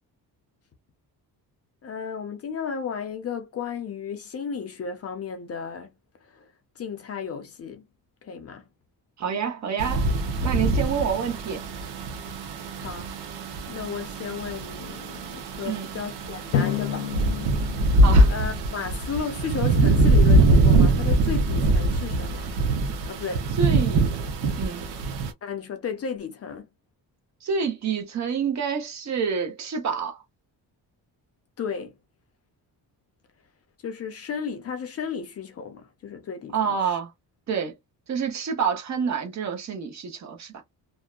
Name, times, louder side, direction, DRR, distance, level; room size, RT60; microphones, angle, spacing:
voice 1, 1.8-5.9 6.2-6.5 6.8-7.8 8.2-8.7 12.8-13.1 13.7-17.1 18.3-22.5 23.1-23.5 25.4-26.7 31.6-32.0 33.8-37.0, left 6 dB, 40° left, 0.6 m, -34 dB
voice 2, 9.2-10.1 10.4-11.6 15.6-15.9 18.0-18.3 23.6-24.0 24.6-24.8 27.4-30.2 36.5-37.1 37.5-37.7 38.1-40.5, right 6 dB, 45° right, 0.8 m, -27 dB
sound 1, 9.8-25.3, right 2 dB, 90° right, 0.8 m, -23 dB
Drum, 16.5-19.3, left 8 dB, 90° left, 0.6 m, -30 dB
2.6 x 2.1 x 2.3 m
cardioid pair, 155°, 38 cm